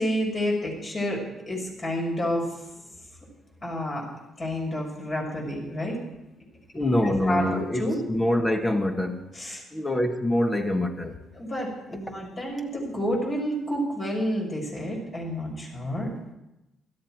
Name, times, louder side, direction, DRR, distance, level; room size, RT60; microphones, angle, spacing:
voice 1, 0.0-2.5 3.6-4.1 4.4-6.0 7.0-8.0 9.3-9.6 11.3-16.1, equal, 40° left, 6.5 m, -29 dB
voice 2, 6.7-9.2 9.7-11.1, left 1 dB, 20° left, 1.6 m, -25 dB
16.5 x 13.0 x 4.6 m
cardioid pair, 90°, 0 cm